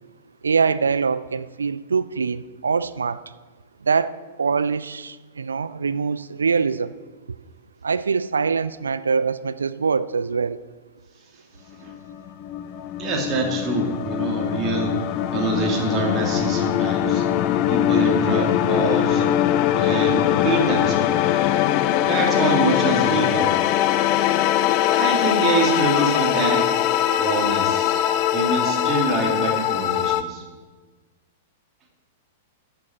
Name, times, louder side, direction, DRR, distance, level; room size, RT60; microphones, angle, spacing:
voice 1, 0.4-3.2 3.8-7.0 7.8-10.6, right 5 dB, 70° right, 0.4 m, -23 dB
sound 1, 11.9-30.2, left 11 dB, 40° left, 0.5 m, -21 dB
voice 2, 13.0-15.0 15.3-17.2 17.7-19.3 19.8-21.1 22.0-23.6 24.9-26.7 27.2-30.4, right 3 dB, 25° right, 2.6 m, -25 dB
14.0 x 8.7 x 4.4 m
figure-of-eight pair, 100°, 0 cm